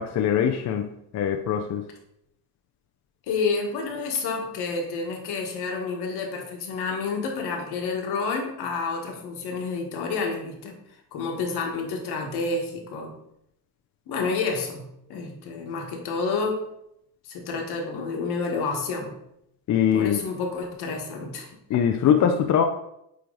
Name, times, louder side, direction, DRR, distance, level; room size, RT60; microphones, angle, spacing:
voice 1, 0.0-1.9 19.7-20.2 21.7-22.6, left 8 dB, 45° left, 5 dB, 0.5 m, -22 dB
voice 2, 3.3-10.8 11.1-13.1 14.1-16.6 17.2-19.2 19.9-21.5, left 4 dB, 70° left, 1 dB, 1.5 m, -29 dB
8.4 x 3.2 x 3.8 m, 0.79 s
cardioid pair, 140°, 40 cm